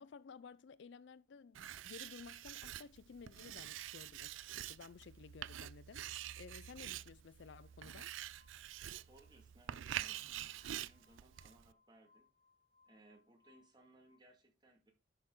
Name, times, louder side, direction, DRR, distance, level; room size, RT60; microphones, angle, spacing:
voice 1, 0.0-6.1 6.4-8.1, left 5 dB, 60° left, 0.4 m, -55 dB
Writing, 1.6-11.7, right 11 dB, 80° right, 0.4 m, -47 dB
Glass, 7.4-14.2, left 4 dB, 60° right, 3.7 m, -74 dB
voice 2, 9.0-12.3 12.9-14.9, right 1 dB, 20° right, 2.1 m, -65 dB
10.5 x 5.8 x 3.8 m
head